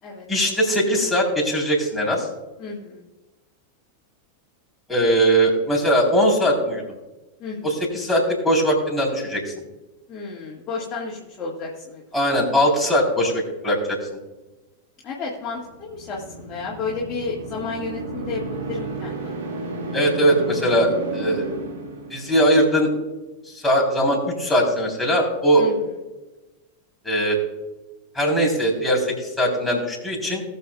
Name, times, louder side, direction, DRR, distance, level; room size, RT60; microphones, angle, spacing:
voice 1, 0.3-2.3 4.9-6.8 7.6-9.5 12.1-14.0 19.9-21.5 22.1-22.9 23.5-25.7 27.0-27.4 28.1-30.4, equal, ahead, -3 dB, 3.8 m, -20 dB
voice 2, 2.6-3.1 7.4-7.7 10.1-12.0 13.2-13.3 15.0-19.6 25.6-25.9, left 4 dB, 30° left, -4 dB, 1.9 m, -32 dB
sound 1, 15.7-22.6, right 3 dB, 55° right, 2.2 m, -33 dB
19.5 x 7.0 x 2.4 m, 1.1 s
figure-of-eight pair, 90°, 0 cm